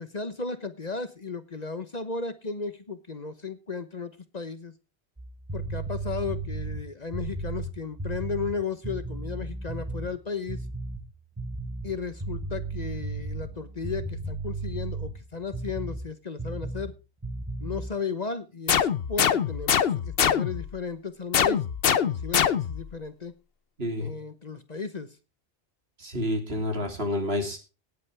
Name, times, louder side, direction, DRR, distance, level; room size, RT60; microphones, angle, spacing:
voice 1, 0.0-4.7 5.5-10.6 11.8-16.9 17.6-23.3 24.0-25.1, left 5 dB, 40° left, 12 dB, 1.1 m, -35 dB
sound 1, 5.2-10.1 10.5-11.1 11.4-16.1 16.4-16.9 17.2-17.9, right 2 dB, 15° right, 1.2 m, -34 dB
sound 2, 18.7-20.7 21.3-22.9, left 8 dB, 60° left, 1.0 m, -24 dB
voice 2, 23.8-24.1 26.0-27.6, left 1 dB, 65° right, 4 dB, 3.5 m, -29 dB
18.0 x 8.4 x 3.5 m, 0.31 s
omnidirectional pair, 1.1 m